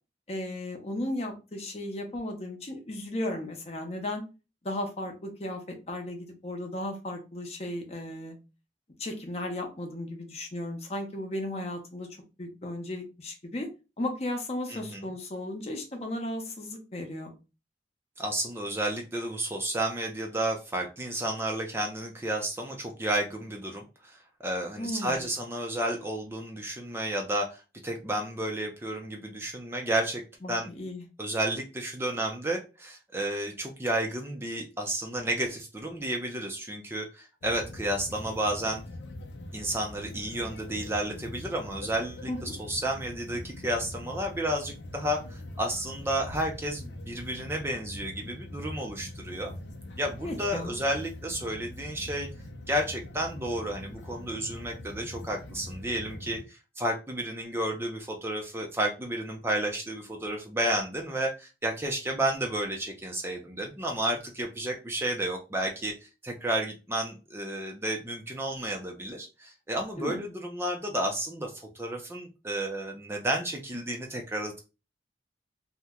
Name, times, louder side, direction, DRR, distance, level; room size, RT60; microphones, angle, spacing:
voice 1, 0.3-4.2 4.6-8.4 9.0-12.1 12.4-13.7 14.0-17.3 24.8-25.3 30.4-31.0 42.3-42.5 50.2-50.8 70.0-70.2, left 1 dB, 35° left, 3 dB, 0.7 m, -35 dB
voice 2, 14.7-15.1 18.2-30.2 30.5-30.7 31.2-38.8 39.5-49.5 50.0-52.3 52.7-65.9 66.2-74.6, right 1 dB, 15° right, 2 dB, 0.4 m, -32 dB
sound 1, 37.4-56.4, left 1 dB, 80° left, 0.5 m, -43 dB
2.8 x 2.1 x 3.5 m, 0.30 s
head